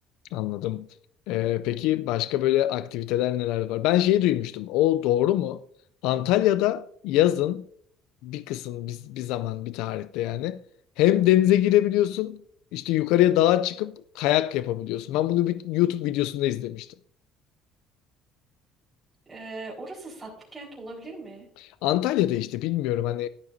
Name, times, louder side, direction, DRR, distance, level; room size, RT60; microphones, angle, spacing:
voice 1, 0.3-0.9 1.3-5.6 6.0-7.6 8.2-10.6 11.0-12.4 12.7-16.9 21.6-23.3, left 14 dB, 85° left, 0.3 m, -24 dB
voice 2, 19.3-21.5, right 2 dB, 15° right, 4.3 m, -40 dB
14.0 x 12.0 x 2.7 m
cardioid pair, 115°, 0 cm